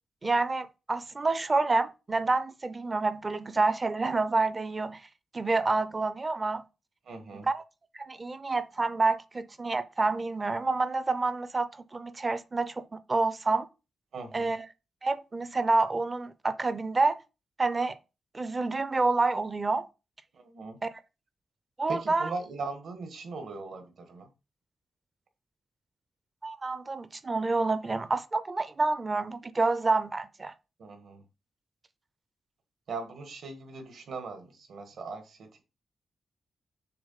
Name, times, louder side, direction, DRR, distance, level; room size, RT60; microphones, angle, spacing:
voice 1, 0.2-5.0 5.3-6.6 7.5-7.6 7.9-12.8 13.1-13.7 14.3-14.7 15.0-17.2 17.6-18.0 18.3-19.9 20.8-20.9 21.8-22.3 26.4-30.5, right 3 dB, 20° right, 0.5 m, -28 dB
voice 2, 7.0-7.5 14.1-14.5 20.3-20.8 21.9-24.3 30.8-31.2 32.9-35.6, right 3 dB, 65° right, 1.7 m, -40 dB
6.7 x 3.7 x 5.6 m
wide cardioid pair, 180°, 0 cm